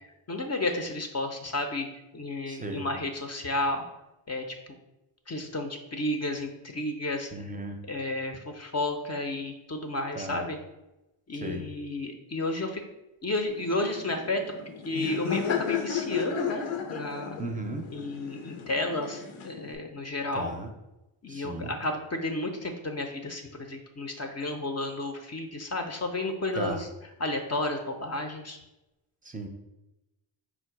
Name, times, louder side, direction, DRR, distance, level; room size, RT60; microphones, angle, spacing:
voice 1, 0.3-1.9 2.1-3.8 4.3-4.4 5.3-7.3 7.8-10.6 11.3-12.8 13.2-14.4 14.9-17.4 17.9-20.5 21.2-26.9 27.2-28.6, left 2 dB, 35° left, 4 dB, 0.6 m, -32 dB
voice 2, 2.5-2.8 7.3-7.8 10.2-10.5 11.4-11.6 17.4-17.8 20.3-20.7 21.3-21.7 26.6-26.8 29.2-29.5, right 1 dB, 15° right, 4 dB, 0.6 m, -35 dB
Laughter, 13.5-19.8, left 7 dB, 85° left, 0.7 m, -34 dB
4.7 x 2.2 x 4.5 m, 0.97 s
cardioid pair, 70°, 49 cm